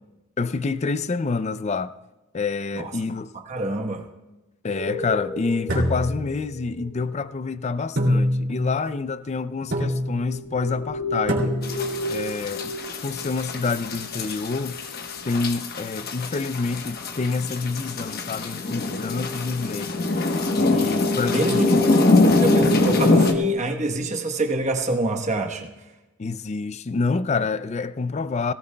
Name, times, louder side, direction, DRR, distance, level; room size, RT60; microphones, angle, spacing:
voice 1, 0.4-1.9 2.3-3.3 4.6-11.6 12.1-12.8 13.0-14.8 15.2-20.1 20.7-21.8 26.2-28.5, left 4 dB, 35° left, 0.4 m, -27 dB
voice 2, 3.5-4.1 21.3-25.7, right 2 dB, 35° right, 1.1 m, -26 dB
sound 1, 4.7-7.1 10.0-15.6 16.4-16.5 16.8-17.0 17.6-17.7 17.9-18.1 18.4-23.6, left 3 dB, 80° left, 1.8 m, -31 dB
sound 2, 5.7-6.9 8.0-8.8 9.7-10.3 11.3-11.9, equal, 60° right, 2.6 m, -25 dB
sound 3, 11.6-23.3, left 2 dB, 50° left, 1.0 m, -24 dB
18.0 x 17.0 x 2.3 m
head